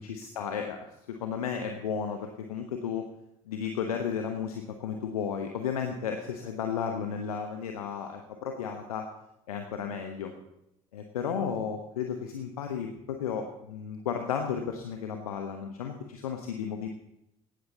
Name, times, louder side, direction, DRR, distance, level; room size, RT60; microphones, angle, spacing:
voice 1, 0.0-3.0 3.5-9.1 9.5-10.3 10.9-16.9, left 7 dB, 75° left, 5 dB, 1.2 m, -33 dB
18.0 x 13.0 x 4.1 m, 0.81 s
figure-of-eight pair, 55°, 19 cm